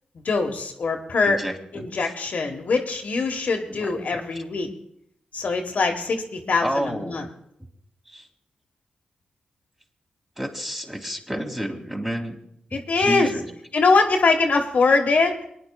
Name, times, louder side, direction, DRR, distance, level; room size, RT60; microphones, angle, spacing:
voice 1, 0.2-1.4 1.7-4.7 5.3-7.3 12.7-13.3 13.7-15.4, left 4 dB, 65° left, 3 dB, 1.2 m, -22 dB
voice 2, 1.2-1.9 3.7-4.2 6.6-7.2 8.1-8.3 10.4-12.4 12.7-13.4, equal, 10° right, 1 dB, 2.2 m, -30 dB
28.5 x 9.9 x 2.3 m, 0.72 s
cardioid pair, 55°, 3 cm